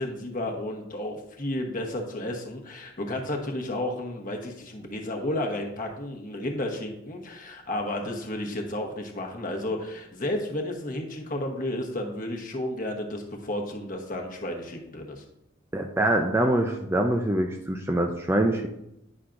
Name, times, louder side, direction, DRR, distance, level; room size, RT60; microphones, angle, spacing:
voice 1, 0.0-15.2, left 1 dB, 40° left, 2 dB, 1.0 m, -32 dB
voice 2, 15.7-18.7, right 1 dB, 10° right, 3 dB, 0.4 m, -24 dB
9.7 x 5.8 x 2.5 m, 0.83 s
head